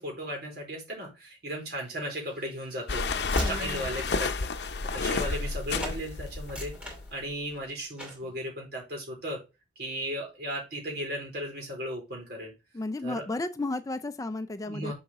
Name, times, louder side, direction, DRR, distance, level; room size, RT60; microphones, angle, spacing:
voice 1, 0.0-3.1 3.4-6.8 7.1-9.4 9.8-12.5 13.0-13.2 14.7-14.9, equal, 60° right, 4.2 m, -36 dB
Train / Slam, 1.9-5.5 5.8-6.0 6.4-7.6 8.0-8.3, left 1 dB, 5° right, 2.5 m, -38 dB
sound 1, 2.9-7.2, left 4 dB, 70° left, 0.7 m, -31 dB
voice 2, 3.4-3.9 12.7-14.9, left 2 dB, 20° left, 0.4 m, -33 dB
7.0 x 5.6 x 3.7 m
head